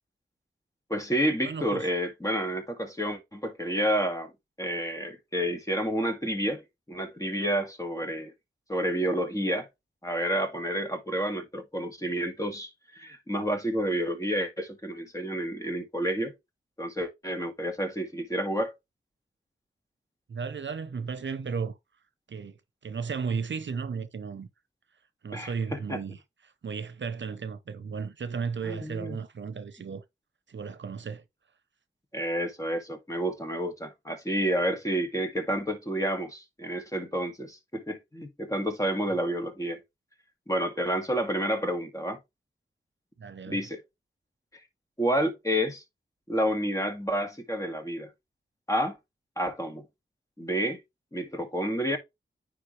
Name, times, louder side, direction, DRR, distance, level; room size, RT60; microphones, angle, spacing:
voice 1, 0.9-4.3 4.6-6.6 6.9-8.3 8.7-9.7 10.0-16.3 16.8-18.7 25.3-26.0 28.6-29.2 32.1-39.8 40.5-42.2 43.5-43.8 45.0-45.8 46.3-48.1 48.7-49.0 49.4-49.9 50.4-50.8 51.1-52.0, equal, 15° left, 2.1 m, -29 dB
voice 2, 1.4-1.9 20.3-21.8 22.3-22.6 22.8-24.5 25.2-30.0 30.5-31.2 43.2-43.6, right 5 dB, 70° right, 0.8 m, -34 dB
9.6 x 3.6 x 3.2 m
cardioid pair, 60°, 20 cm